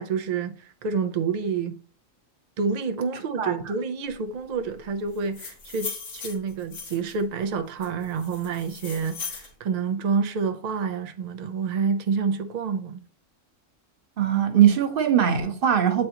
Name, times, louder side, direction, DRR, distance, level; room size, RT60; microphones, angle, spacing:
voice 1, 0.0-1.7 2.6-13.1, right 5 dB, 75° right, 0.3 m, -28 dB
sound 1, 5.1-7.2 7.8-9.5, left 5 dB, 75° left, 1.6 m, -38 dB
voice 2, 14.2-16.1, right 9 dB, 50° right, 0.9 m, -20 dB
7.8 x 4.3 x 2.8 m
omnidirectional pair, 1.3 m